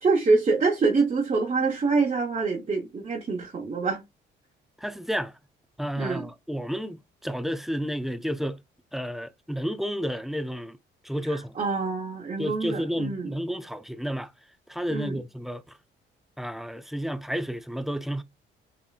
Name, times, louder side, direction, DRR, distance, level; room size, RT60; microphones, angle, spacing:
voice 1, 0.0-4.0 6.0-6.2 11.3-13.3 14.9-15.2, right 4 dB, 35° right, 1.0 m, -25 dB
voice 2, 4.8-5.3 5.8-8.6 8.9-10.8 11.0-11.6 12.4-14.3 14.7-15.8 16.4-18.2, equal, ahead, 0.4 m, -31 dB
5.4 x 2.9 x 2.4 m
cardioid pair, 90°, 20 cm